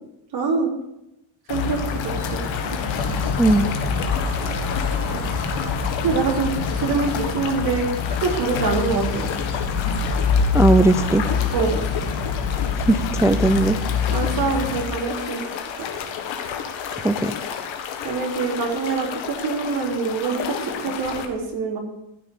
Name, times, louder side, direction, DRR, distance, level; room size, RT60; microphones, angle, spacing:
voice 1, 0.3-0.7 1.5-2.4 5.5-5.6 6.0-9.3 11.5-11.8 14.1-15.5 15.8-15.9 18.0-21.8, right 4 dB, 55° right, -1 dB, 3.5 m, -25 dB
sound 1, 1.5-21.3, left 7 dB, 80° left, 1.7 m, -31 dB
sound 2, 1.5-14.8, left 5 dB, 60° left, 2.5 m, -25 dB
voice 2, 3.4-3.7 10.5-11.2 12.9-13.8 17.0-17.4, right 2 dB, 5° right, 8 dB, 0.4 m, -18 dB
14.0 x 5.9 x 6.7 m, 0.87 s
cardioid pair, 135°, 45 cm